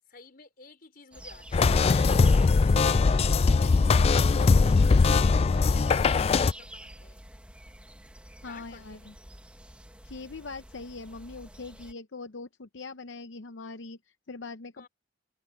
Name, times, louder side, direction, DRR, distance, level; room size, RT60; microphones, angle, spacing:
voice 1, 0.1-7.2 8.4-9.2 14.8-14.9, left 4 dB, 50° left, 4.8 m, -51 dB
sound 1, 1.1-11.9, right 1 dB, 5° right, 1.4 m, -47 dB
sound 2, 1.5-6.5, left 4 dB, 35° left, 0.3 m, -21 dB
voice 2, 8.4-9.1 10.0-14.9, left 3 dB, 80° left, 0.7 m, -42 dB
head